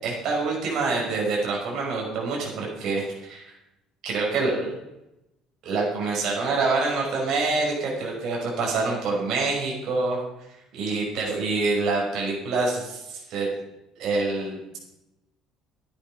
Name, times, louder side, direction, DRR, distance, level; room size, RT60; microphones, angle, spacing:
voice 1, 0.0-3.5 4.0-4.7 5.6-10.2 10.7-13.5 14.0-14.8, right 3 dB, 50° right, -2 dB, 5.5 m, -26 dB
14.0 x 10.0 x 5.6 m, 0.91 s
cardioid pair, 165°, 0 cm